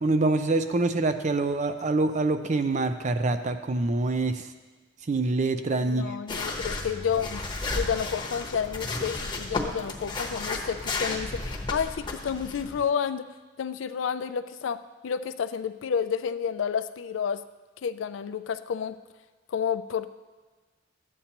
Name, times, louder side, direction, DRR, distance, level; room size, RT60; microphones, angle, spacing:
voice 1, 0.0-4.4 5.1-6.1, right 2 dB, 40° right, 9 dB, 0.5 m, -25 dB
voice 2, 5.8-7.4 7.7-13.3 13.6-17.4 17.8-19.0 19.5-20.1, left 7 dB, 80° left, 12 dB, 0.4 m, -30 dB
sound 1, 6.3-12.8, left 3 dB, 25° left, 0.9 m, -33 dB
12.5 x 8.3 x 2.9 m, 1.3 s
head